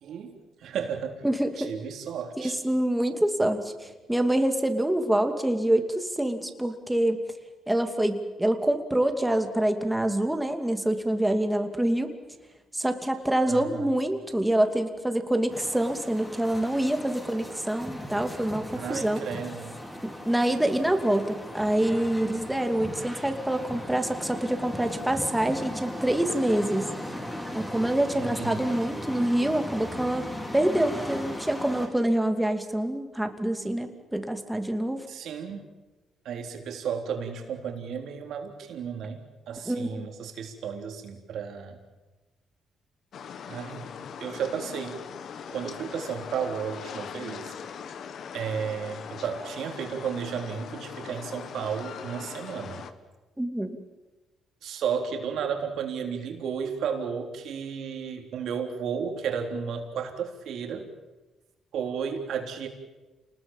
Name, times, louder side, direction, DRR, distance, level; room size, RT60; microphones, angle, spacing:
voice 1, 0.0-1.2 1.6-2.6 13.5-13.9 18.7-19.7 28.1-28.6 35.1-35.7 36.3-41.8 43.5-43.9 44.2-45.0 45.5-47.5 48.3-52.8 54.6-60.9 61.7-62.7, right 7 dB, 75° right, 3 dB, 3.7 m, -33 dB
voice 2, 1.2-1.7 2.4-7.2 7.7-12.1 12.7-19.2 20.0-26.9 27.5-30.2 30.5-35.0 39.7-40.1 53.4-53.8, right 1 dB, 5° right, 6 dB, 2.6 m, -26 dB
sound 1, 15.5-31.9, left 1 dB, 15° left, 5.3 m, -38 dB
sound 2, 43.1-52.9, left 7 dB, 65° left, 1.5 m, -41 dB
28.5 x 20.0 x 7.4 m, 1.2 s
cardioid pair, 90°, 0 cm